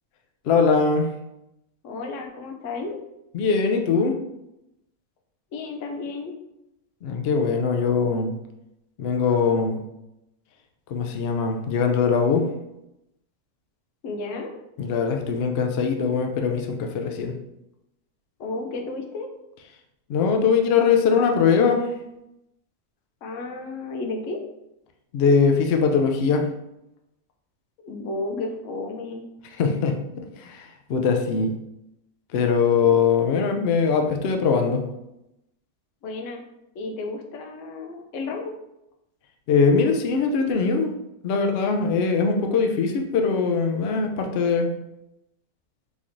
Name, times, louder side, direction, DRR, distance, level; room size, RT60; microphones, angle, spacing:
voice 1, 0.4-1.1 3.3-4.2 7.0-8.3 9.0-9.8 10.9-12.4 14.8-17.3 20.1-21.8 25.1-26.5 29.6-31.5 32.3-34.8 39.5-40.9 41.2-44.7, left 5 dB, 90° left, 4 dB, 0.5 m, -21 dB
voice 2, 1.8-3.0 5.5-6.4 14.0-14.5 18.4-19.3 23.2-24.4 27.8-29.3 36.0-36.4 36.7-38.5, left 3 dB, 65° left, 3 dB, 0.8 m, -32 dB
4.0 x 3.0 x 2.5 m, 0.87 s
omnidirectional pair, 1.6 m